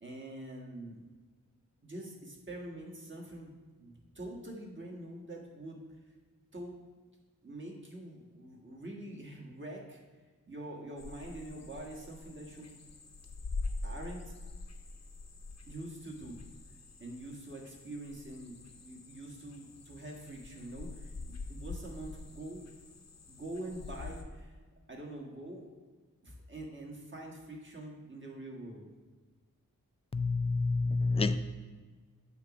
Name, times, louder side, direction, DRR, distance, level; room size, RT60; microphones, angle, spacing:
voice 1, 0.0-1.0 1.8-5.8 6.5-6.8 7.4-10.0 10.5-12.8 13.8-14.3 15.7-16.4 17.0-22.7 23.3-24.6 24.9-25.7 26.2-28.9, right 1 dB, 35° right, -1 dB, 1.5 m, -45 dB
sound 1, 11.0-24.2, left 3 dB, 50° left, 0.7 m, -45 dB
voice 2, 30.1-31.4, left 3 dB, 20° left, 10 dB, 0.3 m, -28 dB
8.0 x 3.0 x 6.0 m, 1.4 s
wide cardioid pair, 65°, 33 cm